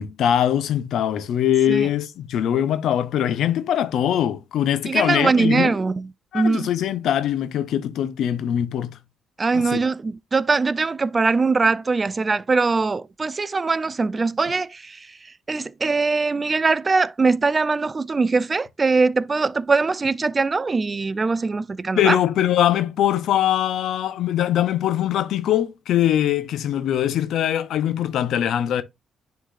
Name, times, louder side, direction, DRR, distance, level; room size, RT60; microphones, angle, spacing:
voice 1, 0.0-5.7 6.3-9.0 9.5-9.8 22.0-28.8, left 10 dB, 75° left, 0.6 m, -22 dB
voice 2, 4.9-6.7 9.4-15.2 15.5-22.2, right 4 dB, 30° right, 0.4 m, -22 dB
10.0 x 3.9 x 2.4 m
cardioid pair, 90°, 0 cm